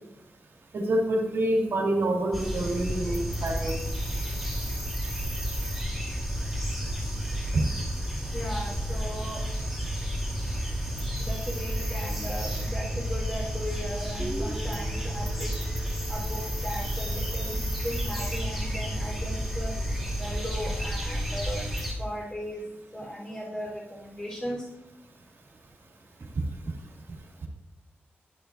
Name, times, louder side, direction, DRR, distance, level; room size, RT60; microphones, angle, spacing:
voice 1, 0.7-3.7 7.5-7.7, right 1 dB, 85° right, 0 dB, 2.2 m, -26 dB
sound 1, 2.3-21.9, equal, 5° left, 3.3 m, -31 dB
voice 2, 8.3-9.4 11.3-15.5 16.1-19.7 20.2-21.6 22.0-22.6 22.9-24.6, equal, 20° left, -2 dB, 3.7 m, -37 dB
Guitar, 14.2-18.2, right 1 dB, 20° right, 1.0 m, -42 dB
11.0 x 11.0 x 2.6 m, 0.93 s
wide cardioid pair, 175°, 4 cm